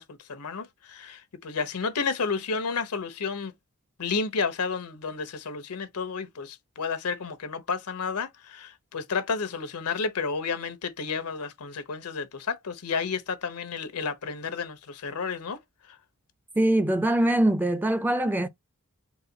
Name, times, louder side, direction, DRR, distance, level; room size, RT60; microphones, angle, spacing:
voice 1, 0.0-3.5 4.0-15.6 15.9-16.0, left 5 dB, 90° left, 0.8 m, -31 dB
voice 2, 16.6-18.5, right 1 dB, 10° right, 0.3 m, -23 dB
4.0 x 2.2 x 3.9 m
head